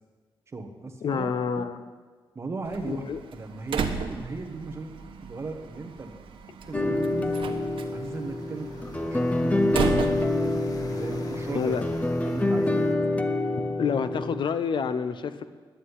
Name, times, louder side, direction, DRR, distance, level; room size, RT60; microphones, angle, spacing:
voice 1, 0.5-1.7 2.3-3.0 3.3-6.2 6.7-7.3 7.9-8.8 9.1-10.6 10.9-11.8 12.2-13.4, right 3 dB, 30° right, 5 dB, 1.3 m, -37 dB
voice 2, 1.0-1.8 2.9-3.2 11.5-11.9 13.8-15.4, left 6 dB, 60° left, 11 dB, 0.8 m, -28 dB
Slam, 2.6-12.1, right 6 dB, 80° right, 1.1 m, -35 dB
sound 1, 6.6-12.9, left 3 dB, 45° left, 1.4 m, -46 dB
sound 2, 6.7-14.4, left 2 dB, 15° left, 0.7 m, -27 dB
10.0 x 9.7 x 9.9 m, 1.5 s
wide cardioid pair, 135°, 9 cm